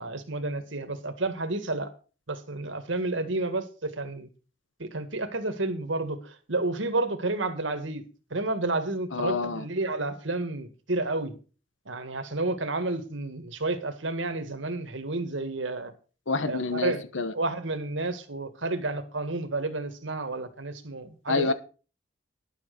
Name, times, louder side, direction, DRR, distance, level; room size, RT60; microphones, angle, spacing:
voice 1, 0.0-1.9 2.3-4.3 4.8-8.0 8.3-11.3 11.9-15.9 16.5-17.0 17.3-21.5, right 2 dB, 80° right, 1.9 m, -31 dB
voice 2, 9.1-9.6 16.3-17.3 21.3-21.5, left 3 dB, 80° left, 1.0 m, -27 dB
11.5 x 7.3 x 6.7 m
head